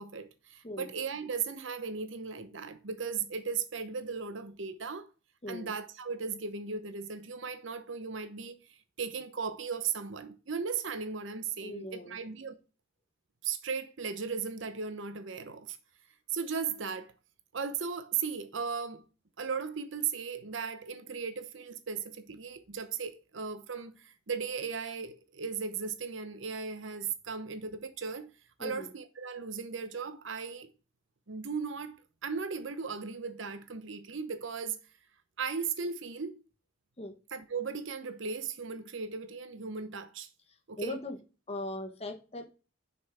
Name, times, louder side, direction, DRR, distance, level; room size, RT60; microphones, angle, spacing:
voice 1, 0.0-5.1 5.5-8.6 9.0-12.6 13.4-15.8 16.3-17.1 17.5-19.0 19.4-28.3 28.6-30.7 31.3-32.0 32.2-34.8 35.4-36.4 37.3-40.3 40.7-41.0, right 5 dB, 70° right, 0.9 m, -37 dB
voice 2, 11.6-12.1 28.6-28.9 37.0-37.1 40.8-41.2 41.5-42.5, left 1 dB, 30° left, 1.2 m, -39 dB
6.5 x 5.5 x 4.7 m
head